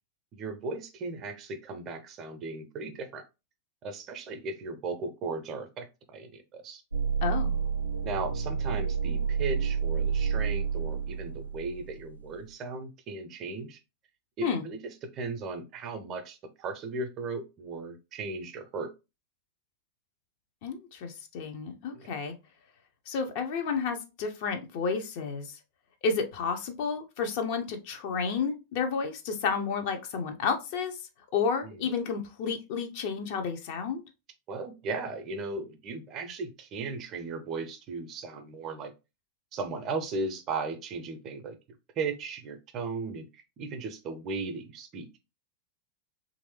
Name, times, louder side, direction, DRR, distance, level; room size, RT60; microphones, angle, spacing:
voice 1, 0.3-3.2 3.8-6.8 8.0-13.8 14.4-18.9 21.9-22.1 31.6-31.9 34.5-38.9 39.5-41.6 42.0-45.1, right 3 dB, 35° right, 8 dB, 0.6 m, -36 dB
sound 1, 6.9-12.3, right 6 dB, 85° right, 0.3 m, -30 dB
voice 2, 7.2-7.6 14.4-14.6 20.6-22.3 23.1-25.6 26.0-31.0 31.3-34.0, left 5 dB, 50° left, 5 dB, 0.6 m, -31 dB
3.2 x 2.5 x 3.1 m, 0.27 s
figure-of-eight pair, 90°, 0 cm